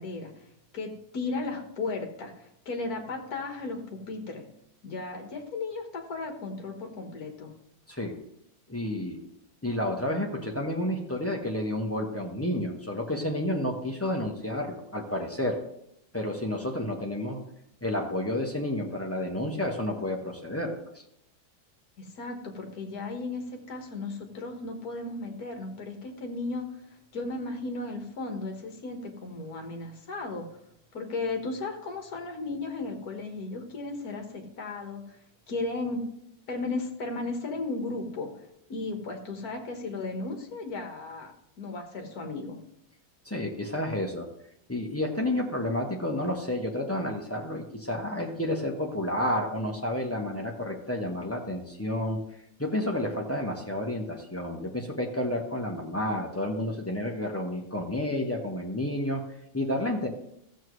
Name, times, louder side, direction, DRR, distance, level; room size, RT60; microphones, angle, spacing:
voice 1, 0.0-4.5 4.8-7.5 22.0-30.5 30.9-35.2 35.5-36.0 36.5-38.3 38.7-41.3 41.6-42.6, left 3 dB, 50° left, 3 dB, 1.8 m, -35 dB
voice 2, 8.7-9.2 9.6-15.6 16.1-17.4 17.8-21.0 43.2-44.3 44.7-52.2 52.6-59.2 59.5-60.1, left 1 dB, 15° left, 0 dB, 0.6 m, -30 dB
14.5 x 7.4 x 3.2 m, 0.77 s
omnidirectional pair, 2.2 m